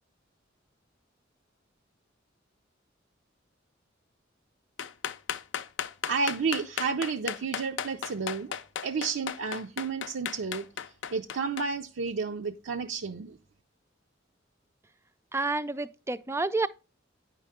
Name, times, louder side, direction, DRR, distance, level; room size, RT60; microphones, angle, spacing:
sound 1, 4.8-11.6, left 8 dB, 70° left, 0.5 m, -35 dB
voice 1, 6.1-8.5 8.8-10.7 11.1-13.4, right 5 dB, 75° right, 0.5 m, -31 dB
voice 2, 15.3-16.7, right 3 dB, 15° right, 0.3 m, -29 dB
9.6 x 5.6 x 3.5 m
head